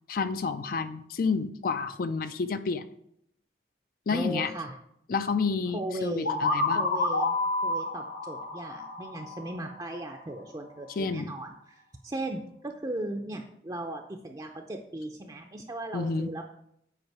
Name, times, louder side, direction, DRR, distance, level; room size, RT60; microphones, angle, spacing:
voice 1, 0.1-2.9 4.1-4.5 5.1-6.9 11.0-11.3 15.9-16.3, left 4 dB, 50° left, 11 dB, 0.4 m, -30 dB
voice 2, 4.1-4.8 5.7-6.4 6.7-7.4 7.6-11.7 12.0-16.4, right 1 dB, 20° right, 2 dB, 0.5 m, -37 dB
sound 1, 6.2-10.0, left 2 dB, 80° left, 1.3 m, -29 dB
7.9 x 4.8 x 4.7 m, 0.73 s
head